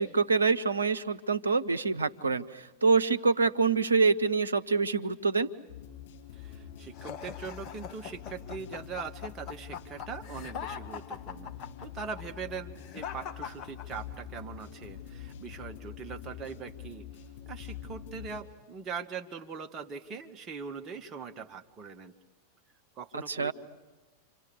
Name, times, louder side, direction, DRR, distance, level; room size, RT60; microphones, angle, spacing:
voice 1, 0.0-5.5 23.3-23.5, right 4 dB, 75° right, 9 dB, 0.9 m, -26 dB
sound 1, 5.7-18.4, left 9 dB, 60° left, 6.7 m, -45 dB
voice 2, 6.3-17.1 17.5-22.1 23.0-23.5, right 5 dB, 25° right, 4 dB, 1.7 m, -41 dB
sound 2, 6.9-14.4, left 7 dB, 35° left, 1.4 m, -42 dB
30.0 x 26.5 x 6.6 m, 1.2 s
figure-of-eight pair, 90°, 0 cm